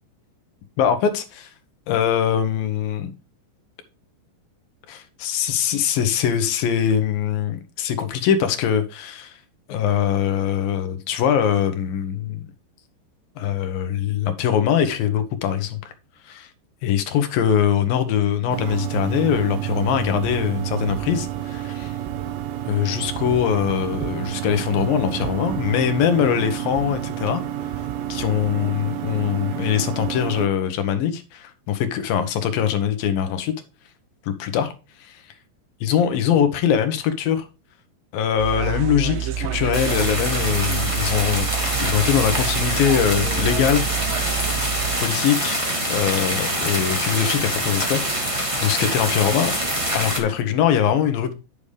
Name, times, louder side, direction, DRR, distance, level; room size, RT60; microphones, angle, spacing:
voice 1, 0.8-1.5 1.9-3.1 4.9-9.4 9.7-12.4 13.4-15.9 16.2-16.5 16.8-22.0 22.7-27.4 28.1-33.5 34.2-34.7 35.0-35.2 35.8-37.4 38.1-41.5 41.8-43.9 45.0-49.5 49.9-51.3, left 9 dB, 70° left, 2.4 m, -22 dB
sound 1, 18.5-30.5, right 12 dB, 70° right, 2.2 m, -29 dB
sound 2, 38.4-45.0, right 11 dB, 85° right, 1.9 m, -28 dB
sound 3, 39.7-50.2, right 1 dB, 35° right, 0.5 m, -25 dB
11.5 x 6.9 x 3.3 m
omnidirectional pair, 5.2 m